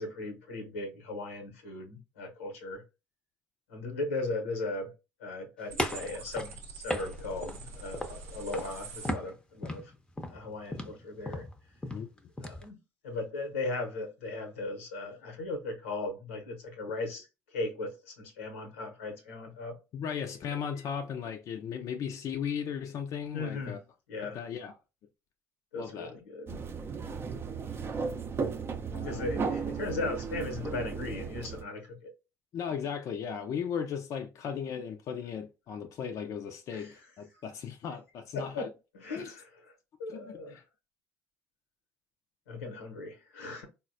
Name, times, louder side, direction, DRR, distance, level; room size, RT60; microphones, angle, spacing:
voice 1, 0.0-2.8 3.7-4.9 5.2-9.9 10.3-11.4 12.4-12.8 13.0-19.7 23.3-23.8 24.1-24.4 25.7-26.6 29.0-32.1 36.7-37.0 38.3-38.7 38.9-39.7 40.0-40.6 42.5-43.6, left 2 dB, 85° left, 0.8 m, -37 dB
sound 1, 5.7-9.1, right 3 dB, 85° right, 0.7 m, -45 dB
sound 2, 5.8-7.6 7.9-8.3 8.5-8.8 9.1-12.7, left 1 dB, 10° left, 0.6 m, -36 dB
voice 2, 19.9-23.8 24.2-24.7 25.8-26.1 28.9-29.3 32.5-38.7 39.2-39.4 40.1-40.6, left 7 dB, 50° left, 0.4 m, -36 dB
sound 3, 26.5-31.6, right 5 dB, 35° right, 0.5 m, -35 dB
3.9 x 2.1 x 2.6 m
hypercardioid pair, 60°, 7 cm